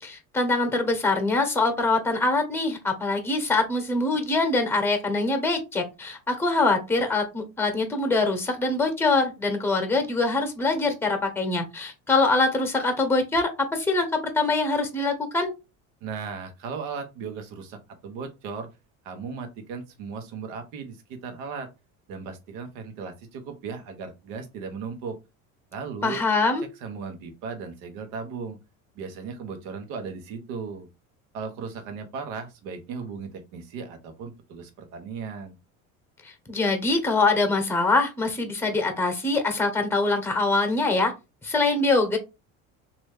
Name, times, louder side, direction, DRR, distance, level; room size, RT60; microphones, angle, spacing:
voice 1, 0.0-15.5 26.0-26.6 36.5-41.1 41.4-42.2, left 3 dB, 5° left, 6 dB, 1.1 m, -24 dB
voice 2, 16.0-18.7 19.0-21.7 22.1-25.2 25.7-26.2 26.8-28.6 29.0-30.9 31.3-35.6, right 5 dB, 70° right, 6 dB, 1.1 m, -36 dB
3.1 x 2.6 x 3.4 m, 0.26 s
hypercardioid pair, 70°, 42 cm